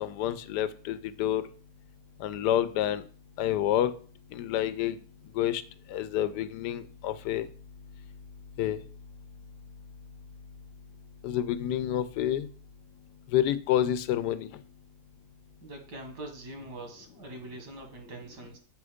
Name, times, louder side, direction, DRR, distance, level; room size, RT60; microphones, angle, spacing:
voice 1, 0.0-1.4 2.2-3.0 3.4-3.9 4.3-5.0 5.3-5.6 5.9-7.5 8.6-8.8 11.2-12.5 13.3-14.5, left 11 dB, 85° left, 13 dB, 1.2 m, -28 dB
voice 2, 15.6-18.6, right 1 dB, 90° right, 4 dB, 2.2 m, -43 dB
6.8 x 5.0 x 5.0 m, 0.43 s
omnidirectional pair, 1.8 m